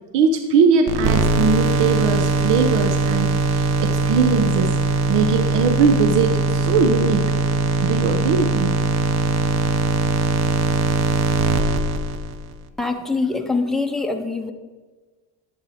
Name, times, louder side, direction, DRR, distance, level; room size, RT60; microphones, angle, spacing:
voice 1, 0.1-7.2 7.8-8.8, right 5 dB, 85° right, 6 dB, 1.0 m, -20 dB
sound 1, 0.9-12.5, right 3 dB, 40° right, 0.6 m, -21 dB
voice 2, 12.8-14.5, left 3 dB, ahead, 3 dB, 0.6 m, -24 dB
11.0 x 8.0 x 4.2 m, 1.3 s
cardioid pair, 170°, 42 cm